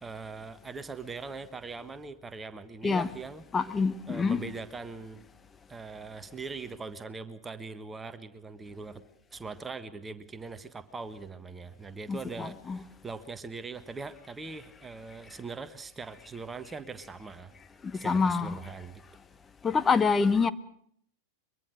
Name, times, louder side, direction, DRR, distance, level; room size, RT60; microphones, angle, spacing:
voice 1, 0.0-3.4 4.1-5.3 5.7-9.0 9.3-17.5 17.9-19.0, right 4 dB, 15° right, 1.4 m, -41 dB
voice 2, 3.5-4.4 12.1-12.8 17.8-18.6 19.6-20.5, left 5 dB, 15° left, 0.8 m, -26 dB
23.0 x 22.5 x 6.5 m
figure-of-eight pair, 90°, 0 cm